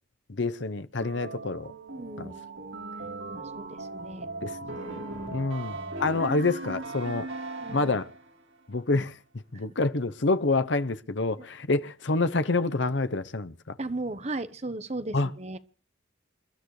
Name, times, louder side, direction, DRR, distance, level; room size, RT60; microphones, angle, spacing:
voice 1, 0.3-1.7 2.2-2.3 4.4-5.0 5.3-5.7 6.0-7.3 7.7-8.1 8.7-9.2 9.5-13.8 15.1-15.3, left 3 dB, 65° left, 0.9 m, -27 dB
sound 1, 1.0-8.3, right 2 dB, 75° right, 3.9 m, -38 dB
voice 2, 1.9-2.4 2.9-3.0 3.3-4.3 5.0-5.5 6.1-6.2 7.6-8.0 9.5-9.8 11.4-11.5 13.8-15.6, right 2 dB, 35° right, 1.1 m, -37 dB
28.5 x 13.0 x 3.2 m
head